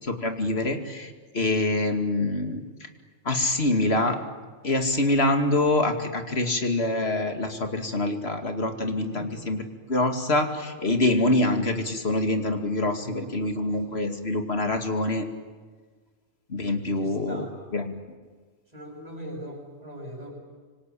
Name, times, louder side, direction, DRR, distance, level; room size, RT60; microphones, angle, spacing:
voice 1, 0.0-2.9 3.2-4.2 4.6-9.6 9.9-15.2 16.5-17.5 17.7-18.0, left 2 dB, 65° left, 6 dB, 2.8 m, -25 dB
voice 2, 13.0-14.0 17.0-17.5 18.7-20.3, equal, 35° right, -7 dB, 7.2 m, -41 dB
26.5 x 25.0 x 8.8 m, 1.5 s
omnidirectional pair, 1.2 m